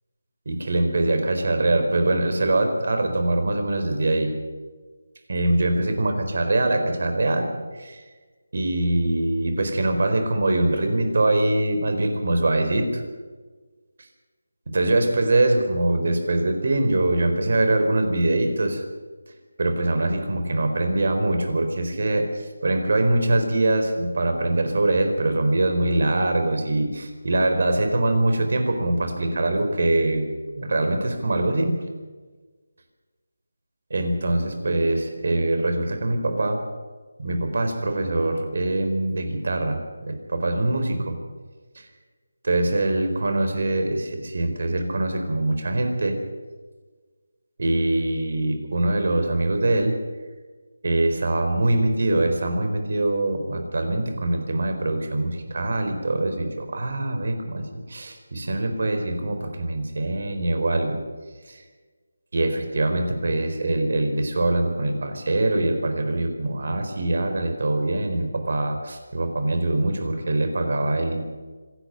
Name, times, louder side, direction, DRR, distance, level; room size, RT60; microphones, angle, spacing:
voice 1, 0.5-4.3 5.3-8.0 8.5-13.0 14.7-18.8 19.6-30.2 30.6-31.8 33.9-36.6 37.2-41.2 41.7-41.9 42.4-46.2 47.6-49.9 50.8-61.0 61.5-61.6 62.3-71.2, right 2 dB, 55° right, 6 dB, 4.4 m, -23 dB
25.5 x 12.0 x 9.0 m, 1.4 s
figure-of-eight pair, 170°, 0 cm